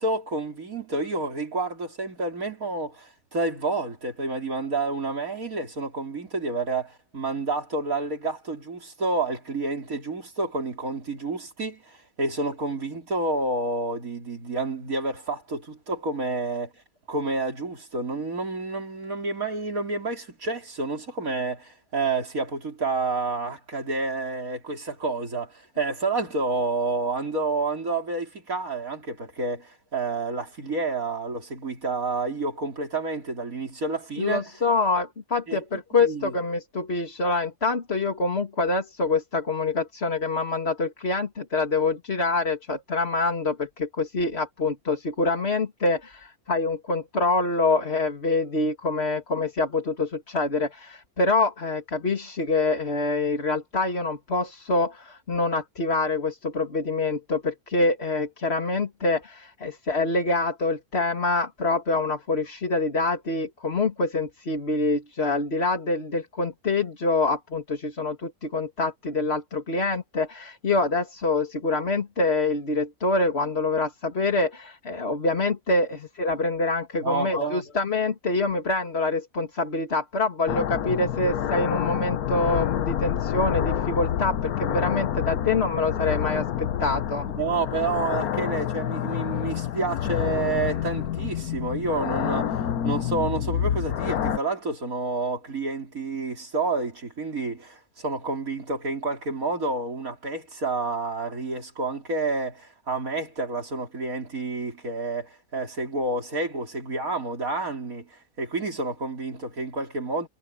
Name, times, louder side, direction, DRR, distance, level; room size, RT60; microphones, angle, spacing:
voice 1, 0.0-16.7 17.1-34.5 35.5-35.6 36.0-36.3 77.0-77.6 87.4-110.3, right 3 dB, 70° right, 4.1 m, -29 dB
voice 2, 34.2-87.3, left 3 dB, 45° left, 2.7 m, -26 dB
sound 1, 80.5-94.4, left 10 dB, 85° left, 1.4 m, -28 dB
omnidirectional pair, 1.5 m